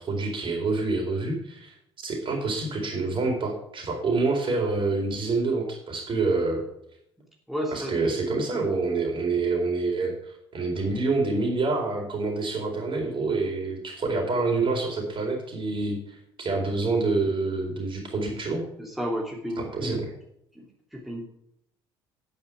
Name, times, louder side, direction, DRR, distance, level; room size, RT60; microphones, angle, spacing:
voice 1, 0.0-1.7 2.0-6.6 7.7-18.7 19.6-20.1, right 3 dB, 40° right, 2 dB, 4.3 m, -27 dB
voice 2, 7.5-8.2 18.8-20.0 20.5-20.7 20.9-21.3, equal, ahead, -1 dB, 2.8 m, -32 dB
10.0 x 8.9 x 4.8 m, 0.75 s
hypercardioid pair, 55°, 13 cm